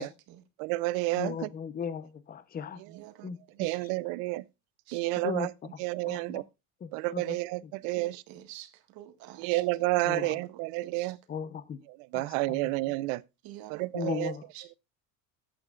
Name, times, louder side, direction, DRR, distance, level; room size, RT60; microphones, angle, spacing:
voice 1, 0.0-0.4 2.9-3.3 3.6-3.8 4.9-5.0 7.9-9.6 10.1-11.1 13.4-14.1 14.5-14.6, right 13 dB, 65° right, 1.8 m, -49 dB
voice 2, 0.6-1.5 3.6-4.4 4.9-5.5 5.8-6.4 6.9-8.2 9.4-11.2 12.1-13.2 13.7-14.3, right 21 dB, 80° right, 0.7 m, -30 dB
voice 3, 1.1-2.8 3.2-3.7 5.2-5.5 6.1-6.4 6.8-7.4 7.6-7.7 10.0-10.4 11.3-11.8 12.1-12.7 13.9-14.4, left 6 dB, 25° left, 0.8 m, -37 dB
13.5 x 8.9 x 2.5 m
cardioid pair, 135°, 39 cm